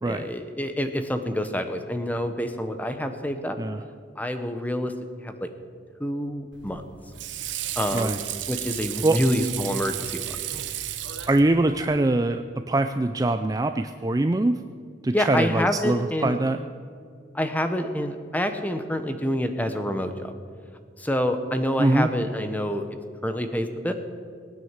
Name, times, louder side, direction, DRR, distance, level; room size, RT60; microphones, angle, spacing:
voice 1, 0.0-3.6 4.2-4.9 5.2-5.5 6.0-6.8 7.8-8.2 8.5-10.4 15.1-16.3 17.3-20.3 21.0-22.9 23.2-23.9, equal, 10° left, 8 dB, 0.9 m, -27 dB
Water / Sink (filling or washing), 6.5-12.0, right 12 dB, 65° right, 0.9 m, -33 dB
voice 2, 11.3-14.6 15.0-16.6 21.8-22.1, right 2 dB, 20° right, 8 dB, 0.4 m, -23 dB
18.5 x 9.3 x 7.4 m, 2.1 s
head